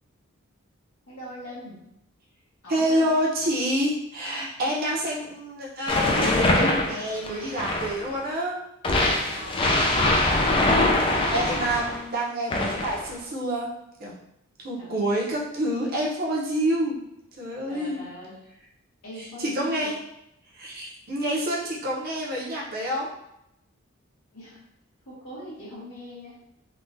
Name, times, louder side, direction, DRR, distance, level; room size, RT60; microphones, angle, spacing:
voice 1, 1.1-1.9 2.6-3.2 9.2-10.2 14.8-15.0 17.6-18.4 19.0-19.9 24.3-24.6 25.1-26.4, equal, 85° left, -7 dB, 1.4 m, -41 dB
voice 2, 2.7-8.6 11.0-13.7 14.0-14.1 14.6-16.9 17.4-18.0 19.4-20.0 20.5-23.1, right 1 dB, 45° right, -4 dB, 0.7 m, -27 dB
sound 1, 5.9-8.1 8.8-12.0 12.5-13.1, left 2 dB, 25° left, 0.3 m, -23 dB
3.6 x 2.3 x 2.6 m, 0.82 s
head